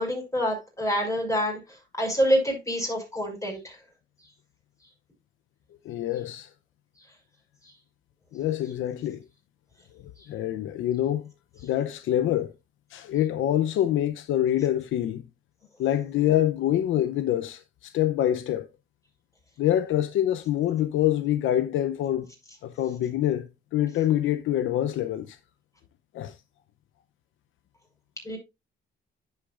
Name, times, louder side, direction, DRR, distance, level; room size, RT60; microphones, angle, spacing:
voice 1, 0.0-1.6 2.0-3.8 28.2-28.4, equal, 15° left, 6.1 m, -26 dB
voice 2, 5.8-6.5 8.3-9.2 10.3-11.2 11.6-12.5 12.9-15.2 15.8-18.7 19.6-22.3 22.6-25.4 26.1-26.3, left 12 dB, 80° left, 0.7 m, -25 dB
10.0 x 8.1 x 2.5 m
cardioid pair, 90°, 20 cm